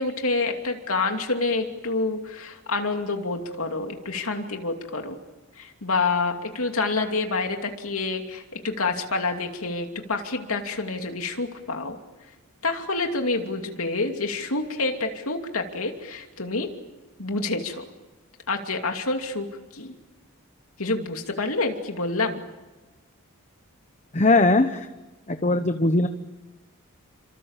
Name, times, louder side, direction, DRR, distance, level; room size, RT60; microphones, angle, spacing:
voice 1, 0.0-5.2 5.6-12.0 12.6-16.7 17.2-17.9 18.5-19.5 19.7-19.9 20.8-22.4, left 3 dB, 70° left, 4 dB, 2.7 m, -27 dB
voice 2, 24.1-24.9 25.3-26.1, left 2 dB, 30° left, 8 dB, 1.0 m, -20 dB
29.5 x 26.0 x 7.4 m, 1.1 s
head